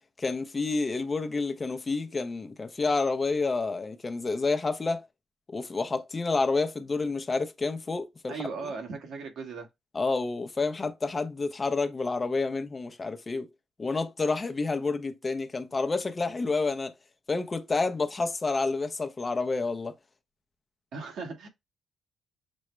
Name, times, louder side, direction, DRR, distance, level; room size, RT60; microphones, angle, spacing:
voice 1, 0.2-5.0 5.5-8.4 9.9-13.5 13.8-16.9 17.3-19.9, left 3 dB, 30° left, 0.7 m, -29 dB
voice 2, 8.3-9.7 20.9-21.5, right 4 dB, 70° right, 1.5 m, -37 dB
6.1 x 2.1 x 3.2 m
cardioid pair, 90°, 0 cm